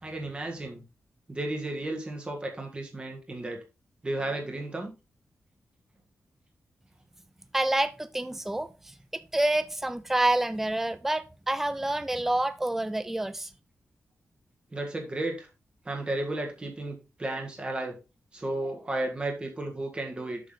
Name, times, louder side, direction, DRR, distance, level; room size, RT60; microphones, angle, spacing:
voice 1, 0.0-0.8 1.3-3.6 4.0-4.9 14.7-15.5 15.8-18.0 18.3-20.4, right 2 dB, 20° right, 1.7 m, -33 dB
voice 2, 7.5-13.5, right 1 dB, 5° right, 0.4 m, -28 dB
7.5 x 6.1 x 3.7 m
wide cardioid pair, 155°, 5 cm